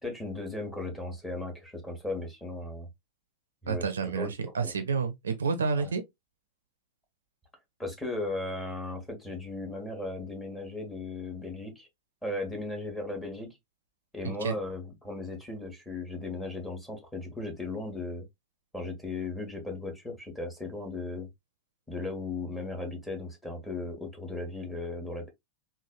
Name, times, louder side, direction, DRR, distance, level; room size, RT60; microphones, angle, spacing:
voice 1, 0.0-2.9 3.6-4.3 4.6-4.7 5.7-5.9 7.8-11.9 12.2-13.6 14.1-18.2 18.7-21.3 21.9-25.3, left 2 dB, 5° left, 1.1 m, -36 dB
voice 2, 3.7-6.0 14.2-14.5, right 5 dB, 70° right, 0.4 m, -30 dB
3.2 x 2.2 x 2.4 m
figure-of-eight pair, 90°, 0 cm